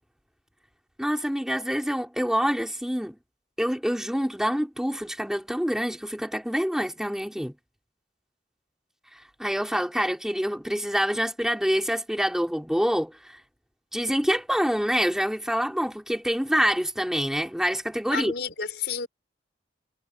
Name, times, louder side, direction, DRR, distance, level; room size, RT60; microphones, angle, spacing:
voice 1, 1.0-3.2 3.6-7.5 9.4-13.4 13.9-18.3, equal, 5° right, 4.1 m, -26 dB
voice 2, 18.1-19.1, left 6 dB, 70° left, 5.7 m, -31 dB
head